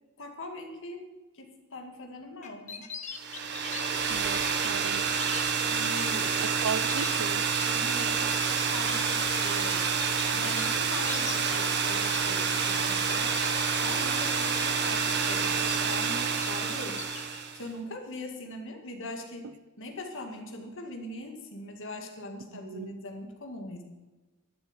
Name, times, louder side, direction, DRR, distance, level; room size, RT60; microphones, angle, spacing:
voice 1, 0.2-1.0 1.3-2.9 5.7-6.4 7.6-9.9 10.3-13.4 13.8-17.0 17.5-19.5 19.8-23.8, left 1 dB, 60° left, 3 dB, 2.1 m, -41 dB
sound 1, 2.4-5.4 5.9-6.2 6.5-12.9 13.1-13.7 14.1-14.5 14.9-16.1 16.4-17.4, left 6 dB, 30° left, 1.3 m, -42 dB
sound 2, 3.2-17.6, right 6 dB, 50° right, 1.3 m, -28 dB
voice 2, 4.1-5.1 6.4-7.4 22.5-22.9, right 5 dB, 70° right, 15 dB, 0.6 m, -36 dB
12.0 x 7.1 x 9.7 m, 1.2 s
head